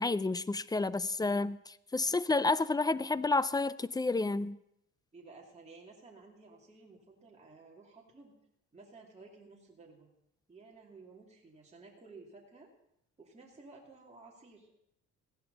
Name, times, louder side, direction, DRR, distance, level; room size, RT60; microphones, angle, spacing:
voice 1, 0.0-4.6, left 3 dB, 15° left, 0.4 m, -30 dB
voice 2, 5.1-8.3 8.7-10.1 10.5-12.7 13.2-14.7, right 3 dB, 20° right, 2.6 m, -54 dB
16.0 x 11.0 x 4.0 m
cardioid pair, 90°, 30 cm